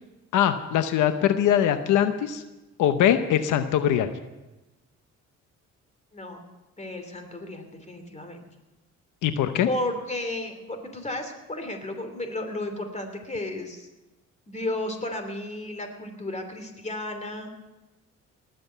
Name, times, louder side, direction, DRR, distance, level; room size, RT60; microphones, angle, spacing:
voice 1, 0.3-2.4 2.8-4.1 9.2-9.7, left 10 dB, 85° left, 9 dB, 0.9 m, -22 dB
voice 2, 6.1-6.5 6.8-8.4 9.6-13.9 14.5-17.5, left 1 dB, 25° left, 6 dB, 3.1 m, -33 dB
19.5 x 7.9 x 8.0 m, 1.1 s
cardioid pair, 90°, 30 cm